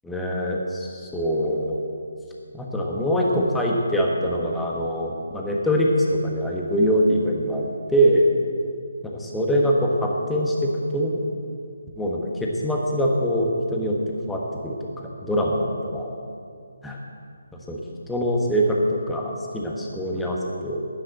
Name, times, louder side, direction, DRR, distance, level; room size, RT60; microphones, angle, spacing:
voice 1, 0.0-1.8 2.5-7.6 7.9-8.3 9.0-11.2 12.0-14.0 14.3-16.2 16.8-17.0 17.5-17.8 18.1-20.9, equal, 5° left, -2 dB, 1.4 m, -23 dB
10.0 x 10.0 x 8.0 m, 2.3 s
figure-of-eight pair, 160°, 0 cm